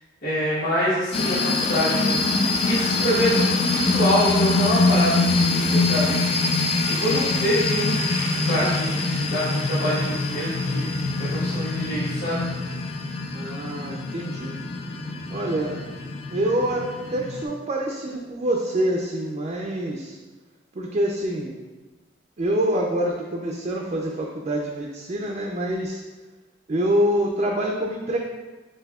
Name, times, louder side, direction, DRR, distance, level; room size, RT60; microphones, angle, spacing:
voice 1, 0.2-6.2 6.5-10.9 11.2-12.5, equal, 55° left, -13 dB, 1.2 m, -26 dB
sound 1, 1.1-17.4, left 3 dB, 30° left, 0.3 m, -24 dB
voice 2, 7.1-7.5 13.3-14.6 15.3-15.8 16.3-16.8 17.1-20.2 20.7-21.6 22.4-26.0 26.7-28.2, right 1 dB, 35° right, -1 dB, 0.4 m, -26 dB
7.6 x 2.7 x 2.3 m, 1.2 s
head